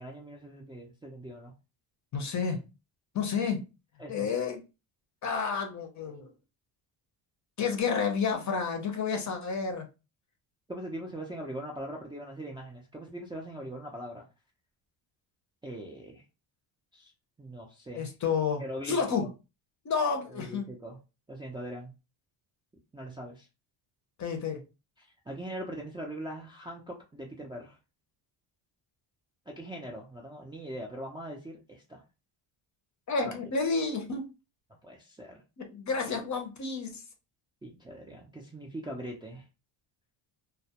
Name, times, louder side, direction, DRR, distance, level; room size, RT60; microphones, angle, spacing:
voice 1, 0.0-1.5 4.0-4.3 10.7-14.2 15.6-16.2 16.9-17.1 17.4-18.1 18.6-19.3 20.3-21.0 21.3-21.9 22.9-23.5 25.3-27.8 29.5-32.0 33.2-33.4 34.8-35.4 37.6-39.4, right 1 dB, 10° right, 0.4 m, -41 dB
voice 2, 2.1-2.6 3.1-3.6 4.1-4.6 5.2-6.3 7.6-9.9 17.9-19.2 19.8-20.7 24.2-24.6 33.1-34.2 35.6-37.0, left 5 dB, 35° left, 0.6 m, -30 dB
2.2 x 2.1 x 2.8 m
cardioid pair, 95°, 48 cm